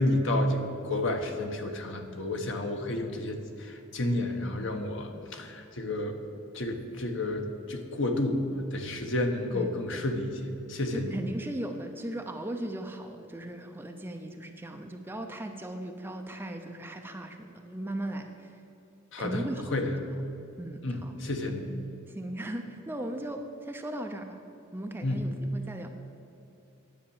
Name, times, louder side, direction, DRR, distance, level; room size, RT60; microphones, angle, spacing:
voice 1, 0.0-6.2 6.5-8.4 8.7-11.1 19.1-20.0 20.8-21.7 25.0-25.3, left 1 dB, 60° left, 5 dB, 1.0 m, -31 dB
voice 2, 9.5-10.0 10.9-18.6 19.2-19.9 20.6-21.1 22.1-24.4 24.7-25.9, right 1 dB, 10° right, 4 dB, 0.5 m, -37 dB
10.0 x 7.6 x 7.1 m, 2.8 s
head